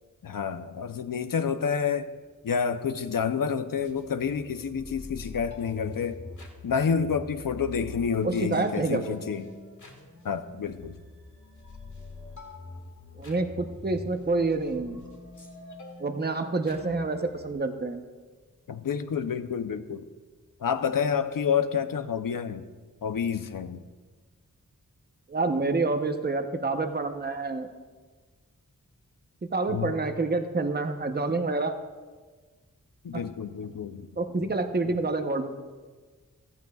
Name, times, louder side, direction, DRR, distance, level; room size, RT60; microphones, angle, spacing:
voice 1, 0.2-2.1 2.4-6.2 6.6-9.4 10.2-11.0 18.7-20.0 20.6-22.6 23.0-23.8 29.7-29.9 33.0-34.1 34.4-34.5 34.8-35.0, left 6 dB, 85° left, 10 dB, 0.7 m, -29 dB
sound 1, 3.8-17.5, left 2 dB, 65° left, 1.8 m, -45 dB
voice 2, 8.2-9.2 13.2-15.0 16.0-18.0 25.3-27.7 29.4-31.7 33.1-33.2 34.2-35.5, right 3 dB, 30° right, 6 dB, 0.9 m, -28 dB
15.5 x 14.0 x 2.4 m, 1.4 s
wide cardioid pair, 70°, 33 cm